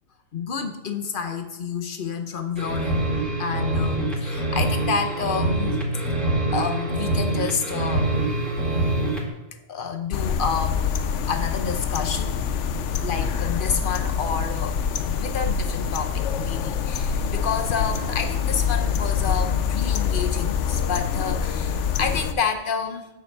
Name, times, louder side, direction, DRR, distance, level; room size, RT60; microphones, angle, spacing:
voice 1, 0.3-3.1 3.4-5.9 6.5-8.2 8.8-8.9 9.5-10.8 11.3-12.4 13.0-14.8 15.2-23.1, left 5 dB, 50° left, 6 dB, 0.9 m, -29 dB
sound 1, 2.5-9.3, right 2 dB, ahead, 1.8 m, -25 dB
sound 2, 10.1-22.3, left 7 dB, 80° left, 0.9 m, -25 dB
6.7 x 5.2 x 7.0 m, 1.0 s
omnidirectional pair, 1.3 m